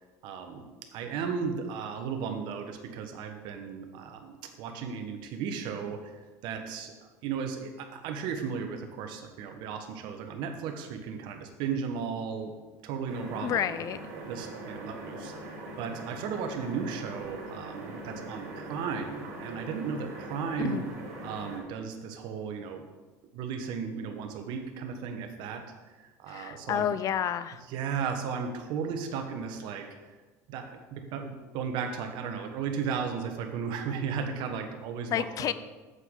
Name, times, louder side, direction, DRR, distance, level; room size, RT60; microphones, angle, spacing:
voice 1, 0.2-0.6 0.9-6.9 7.2-12.5 12.8-13.7 14.3-20.8 21.2-22.8 23.3-26.9 27.7-30.1 30.5-35.5, right 6 dB, 65° right, 6 dB, 1.2 m, -35 dB
sound 1, 13.1-21.6, right 2 dB, 85° right, 2.6 m, -42 dB
voice 2, 13.4-14.0 20.6-20.9 26.3-27.6 35.1-35.5, left 10 dB, 45° left, 14 dB, 0.4 m, -30 dB
8.1 x 8.1 x 3.9 m, 1.2 s
supercardioid pair, 100°, 8 cm